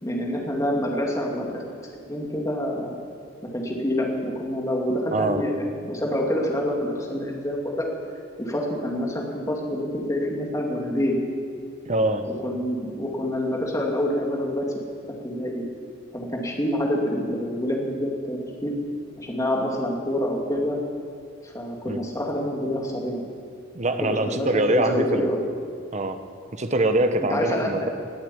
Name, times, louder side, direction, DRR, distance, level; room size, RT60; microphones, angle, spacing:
voice 1, 0.0-1.6 2.1-3.0 3.5-7.9 8.4-11.2 12.4-14.7 15.1-15.7 16.1-18.8 19.2-20.8 21.4-23.3 24.0-25.4 27.3-27.7, left 1 dB, 15° left, -1 dB, 2.3 m, -27 dB
voice 2, 5.1-5.4 11.9-12.3 21.8-22.0 23.7-25.3 25.9-26.3 26.5-27.9, right 2 dB, 35° right, 8 dB, 1.0 m, -24 dB
19.0 x 8.2 x 8.3 m, 2.3 s
head